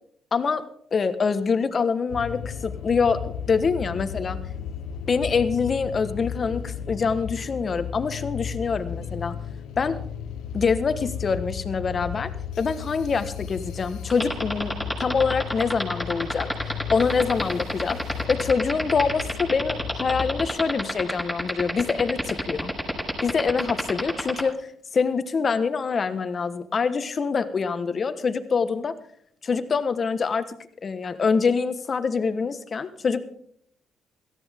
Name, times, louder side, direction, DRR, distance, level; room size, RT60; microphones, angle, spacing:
voice 1, 0.3-0.6 0.9-4.4 5.1-9.3 9.8-10.0 10.5-12.3 12.6-14.7 15.0-22.7 23.2-28.9 29.4-30.4 30.8-33.2, left 5 dB, 45° left, 11 dB, 1.3 m, -25 dB
sound 1, 2.1-20.5, left 8 dB, 85° left, 1.1 m, -35 dB
sound 2, 14.1-24.4, equal, 10° right, 5.7 m, -27 dB
17.5 x 13.5 x 3.7 m, 0.64 s
supercardioid pair, 70°, 0 cm